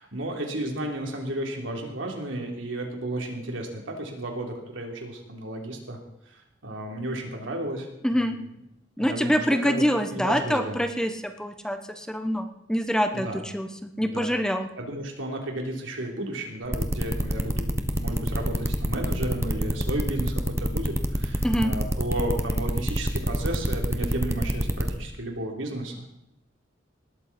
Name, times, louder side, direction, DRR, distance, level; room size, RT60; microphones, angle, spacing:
voice 1, 0.0-6.0 6.3-8.5 9.0-10.8 13.1-13.4 14.0-14.3 14.8-26.1, right 1 dB, 85° right, 1 dB, 3.5 m, -33 dB
voice 2, 8.0-8.3 9.0-14.7 21.4-21.7, equal, 5° left, 7 dB, 1.0 m, -25 dB
sound 1, 16.7-24.9, right 1 dB, 15° right, 1.2 m, -26 dB
19.5 x 13.0 x 4.3 m, 0.84 s
head